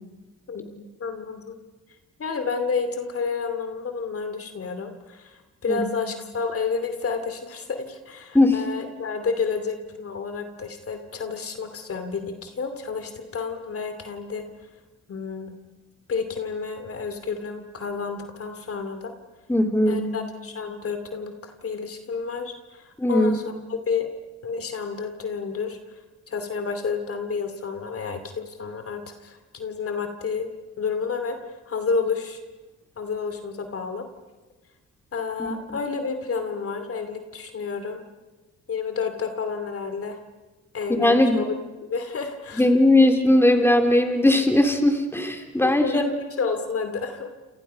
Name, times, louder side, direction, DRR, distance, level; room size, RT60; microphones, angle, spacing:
voice 1, 0.5-1.6 2.2-14.5 15.1-15.5 16.1-19.1 19.9-24.1 24.4-26.0 26.3-30.5 30.8-31.4 31.7-32.4 33.0-34.1 35.1-38.0 38.7-40.2 40.7-41.5 41.8-42.6 45.6-47.3, left 5 dB, 50° left, 8 dB, 2.7 m, -30 dB
voice 2, 19.5-20.1 23.0-23.3 35.4-35.5 40.9-41.4 42.6-46.0, left 1 dB, 10° left, 4 dB, 3.6 m, -19 dB
28.5 x 28.5 x 5.7 m, 1.2 s
cardioid pair, 90°, 30 cm